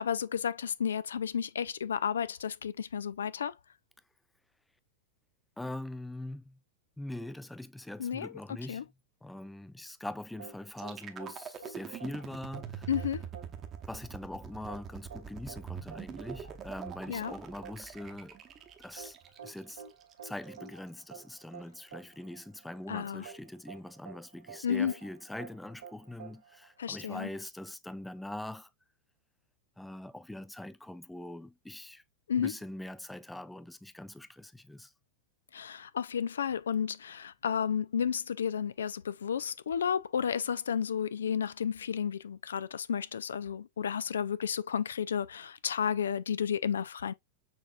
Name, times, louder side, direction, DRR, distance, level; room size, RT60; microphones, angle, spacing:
voice 1, 0.0-3.5 8.0-8.3 8.7-8.8 12.9-13.2 17.1-17.3 22.9-23.3 24.6-24.9 26.8-27.3 32.3-32.5 35.5-47.1, left 8 dB, 75° left, 0.3 m, -32 dB
voice 2, 5.6-6.6 7.0-8.8 9.2-12.9 13.9-18.4 18.8-19.2 19.4-19.8 20.2-28.7 29.8-32.0 32.4-34.9, left 1 dB, 5° left, 0.4 m, -43 dB
sound 1, 10.4-27.3, right 7 dB, 75° right, 1.7 m, -50 dB
sound 2, 10.7-20.7, right 7 dB, 30° right, 0.8 m, -44 dB
6.3 x 3.5 x 2.3 m
hypercardioid pair, 100°, 0 cm